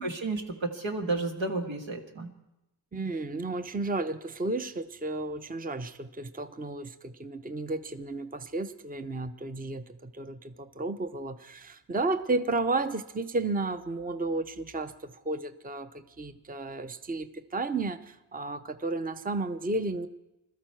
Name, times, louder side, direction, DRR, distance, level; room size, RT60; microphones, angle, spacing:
voice 1, 0.0-2.3, right 3 dB, 85° right, 3 dB, 1.7 m, -32 dB
voice 2, 2.9-20.1, right 2 dB, 20° right, 10 dB, 0.7 m, -33 dB
21.5 x 13.0 x 4.6 m, 0.92 s
wide cardioid pair, 75°, 44 cm